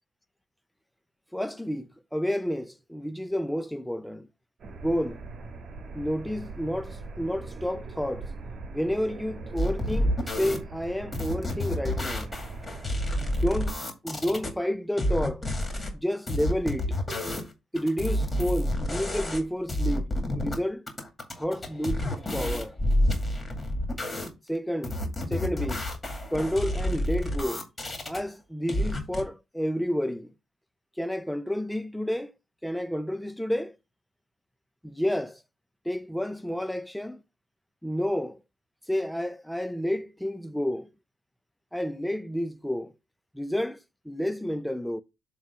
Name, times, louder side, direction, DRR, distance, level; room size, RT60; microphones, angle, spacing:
voice 1, 1.3-4.3 4.8-5.2 5.9-8.3 8.7-12.3 13.2-15.5 15.9-17.0 17.7-20.9 21.4-22.8 24.5-25.0 25.3-25.8 26.3-27.7 28.1-30.3 31.0-32.3 32.6-33.8 34.8-35.4 35.8-37.2 37.8-38.4 38.9-40.9 41.7-42.9 43.3-43.8 44.0-45.0, equal, 5° left, 0.6 m, -30 dB
sound 1, 4.6-13.6, right 3 dB, 55° right, 1.4 m, -41 dB
sound 2, 9.6-10.6 11.1-14.5 15.0-15.9 16.3-17.5 17.7-19.4 19.7-20.5 20.9-24.3 24.8-28.2 28.7-29.2, left 1 dB, 20° left, 2.3 m, -29 dB
7.2 x 3.0 x 5.5 m
cardioid pair, 90°, 0 cm